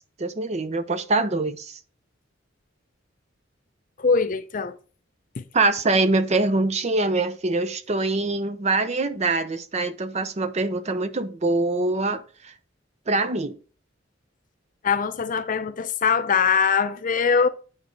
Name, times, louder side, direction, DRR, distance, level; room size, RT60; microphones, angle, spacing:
voice 1, 0.2-1.8 5.5-12.5 13.1-13.6, right 3 dB, 35° right, 0.6 m, -24 dB
voice 2, 4.0-4.8 5.4-5.5 14.8-17.5, left 5 dB, 45° left, 0.6 m, -22 dB
8.8 x 5.1 x 3.3 m
head